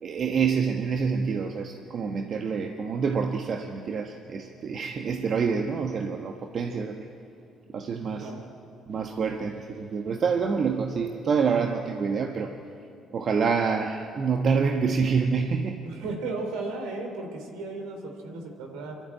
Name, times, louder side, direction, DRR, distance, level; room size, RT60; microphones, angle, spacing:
voice 1, 0.0-7.1 7.7-8.3 8.9-12.5 13.1-15.8, right 5 dB, 55° right, 4 dB, 1.2 m, -27 dB
voice 2, 15.8-19.0, right 3 dB, 80° right, 3 dB, 3.1 m, -35 dB
25.0 x 12.5 x 8.9 m, 2.6 s
hypercardioid pair, 55°, 0 cm